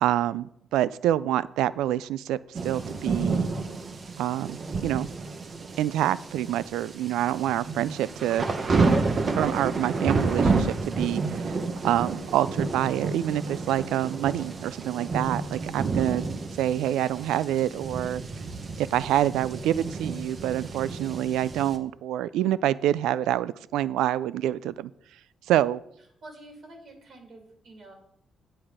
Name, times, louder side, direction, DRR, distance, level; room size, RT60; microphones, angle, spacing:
voice 1, 0.0-3.4 4.2-5.1 5.8-8.5 9.3-16.3 16.6-18.2 18.8-24.9 25.5-25.8, right 12 dB, 90° right, 18 dB, 0.3 m, -27 dB
sound 1, 2.5-21.8, right 4 dB, 40° right, 1.0 m, -30 dB
voice 2, 26.2-27.9, right 2 dB, 55° right, 2 dB, 2.7 m, -47 dB
8.7 x 7.7 x 4.9 m, 0.73 s
cardioid pair, 90°, 0 cm